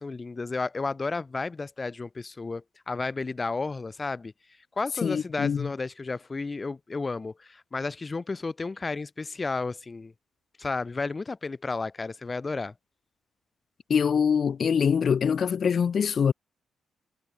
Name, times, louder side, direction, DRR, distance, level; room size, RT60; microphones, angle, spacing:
voice 1, 0.0-4.3 4.8-10.1 10.6-12.7, left 3 dB, 30° left, 1.0 m, -32 dB
voice 2, 5.0-5.7 13.9-16.3, left 7 dB, 55° left, 1.4 m, -24 dB
cardioid pair, 65°, 0 cm